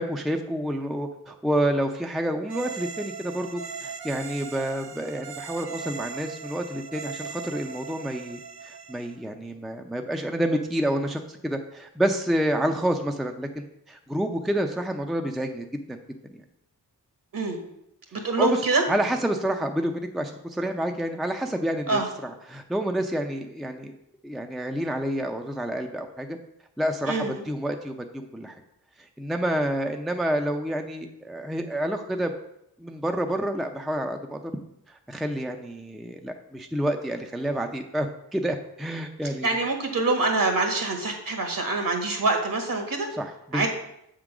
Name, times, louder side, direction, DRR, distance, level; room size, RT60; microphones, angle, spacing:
voice 1, 0.0-16.0 16.3-16.4 18.4-18.6 18.9-23.9 24.2-26.4 26.8-28.6 29.0-32.3 32.8-34.4 34.9-39.6 43.1-43.7, right 1 dB, ahead, 5 dB, 0.5 m, -29 dB
sound 1, 2.5-9.2, right 5 dB, 80° right, 0.8 m, -39 dB
voice 2, 18.1-18.8 21.9-22.0 27.1-27.4 39.4-43.1 43.5-43.7, right 3 dB, 60° right, 4 dB, 1.6 m, -25 dB
7.3 x 3.8 x 6.0 m, 0.79 s
wide cardioid pair, 80°, 38 cm